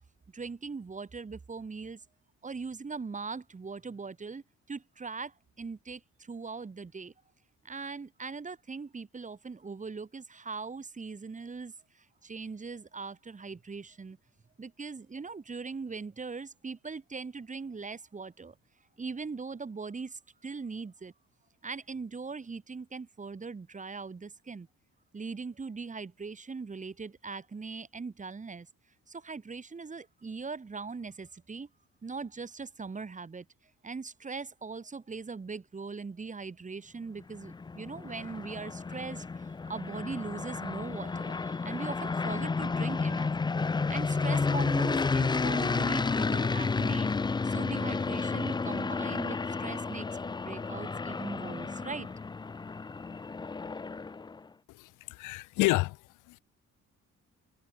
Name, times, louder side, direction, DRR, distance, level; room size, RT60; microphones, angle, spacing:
voice 1, 0.3-2.0 2.4-7.1 7.6-14.2 14.6-18.6 19.0-21.1 21.6-24.7 25.1-28.7 29.1-31.7 32.0-33.5 33.8-43.3 43.9-47.1 47.4-50.2 50.4-52.1, right 4 dB, 25° right, 1.5 m, -40 dB
sound 1, 37.2-54.4, left 4 dB, 15° left, 0.4 m, -31 dB
voice 2, 54.7-56.0 56.3-56.4, left 20 dB, 85° left, 0.5 m, -29 dB
cardioid pair, 90°, 30 cm